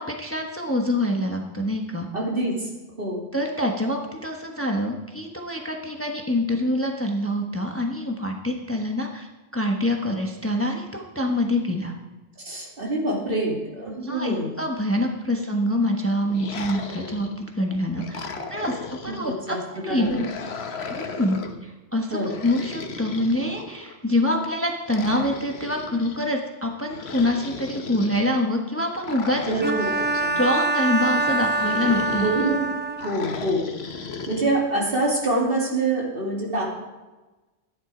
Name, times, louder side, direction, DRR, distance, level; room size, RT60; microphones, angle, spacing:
voice 1, 0.0-2.1 3.3-9.3 9.5-11.9 14.0-18.2 18.5-20.3 21.0-21.4 21.6-29.5 30.3-32.3, left 1 dB, 15° left, 2 dB, 1.2 m, -25 dB
voice 2, 2.1-2.7 3.0-3.2 12.4-14.5 15.4-15.5 16.7-17.1 18.0-18.1 18.3-18.4 19.2-19.6 19.9-20.2 22.1-22.3 29.4-29.9 30.2-30.5 32.2-32.7 33.0-33.6 34.3-36.7, right 2 dB, 60° right, -2 dB, 3.1 m, -26 dB
sound 1, 16.3-17.5 18.0-19.4 20.0-21.6 22.2-24.0 24.9-26.2 26.9-28.3 29.0-30.3 31.0-32.5 33.0-34.4, left 5 dB, 85° left, 1.3 m, -36 dB
Bowed string instrument, 29.6-33.3, right 2 dB, 15° right, 0.5 m, -25 dB
13.0 x 10.5 x 5.0 m, 1.2 s
omnidirectional pair, 1.0 m